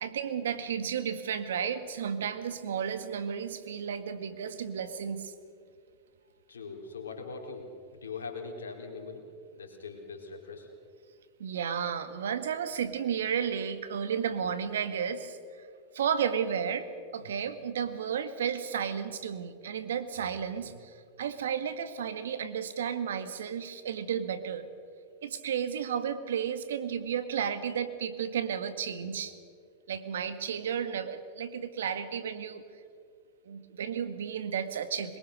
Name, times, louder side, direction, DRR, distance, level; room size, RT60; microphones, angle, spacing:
voice 1, 0.0-5.3 11.4-15.7 15.9-16.9 17.1-24.7 25.2-29.3 29.9-32.6 33.4-35.2, right 8 dB, 80° right, 11 dB, 1.6 m, -33 dB
voice 2, 6.5-7.7 7.9-9.2 9.5-10.7, left 4 dB, 90° left, 3 dB, 3.5 m, -41 dB
22.5 x 21.0 x 6.4 m, 2.2 s
hypercardioid pair, 100°, 0 cm